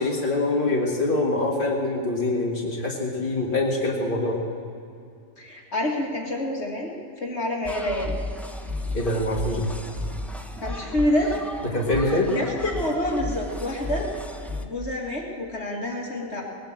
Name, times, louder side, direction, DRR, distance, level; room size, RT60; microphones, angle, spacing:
voice 1, 0.0-4.4 8.9-9.7 11.6-12.3, left 2 dB, 40° left, -3 dB, 2.1 m, -24 dB
voice 2, 5.4-6.9 7.2-8.1 10.6-11.4 12.0-14.1 14.6-16.4, left 1 dB, 55° left, -1 dB, 2.5 m, -27 dB
sound 1, 7.6-14.6, left 2 dB, ahead, 0.7 m, -33 dB
19.0 x 10.5 x 7.4 m, 2.5 s
omnidirectional pair, 1.4 m